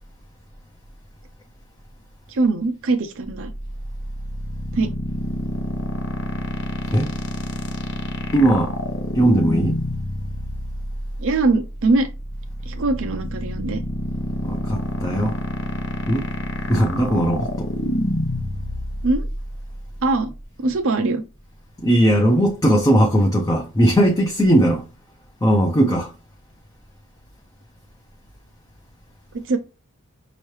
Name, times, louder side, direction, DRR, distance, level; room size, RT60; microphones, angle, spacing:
voice 1, 2.3-3.5 4.7-4.9 11.2-12.1 12.7-13.8 19.0-19.3 20.0-20.3 20.6-21.2 29.3-29.6, right 3 dB, 60° right, 0.5 m, -21 dB
sound 1, 3.2-20.4, equal, 55° left, 0.7 m, -28 dB
voice 2, 8.3-8.7 9.1-9.7 14.4-15.4 16.1-16.3 16.7-17.7 21.8-24.8 25.4-26.1, right 1 dB, 15° left, 0.5 m, -18 dB
5.5 x 3.0 x 3.1 m
head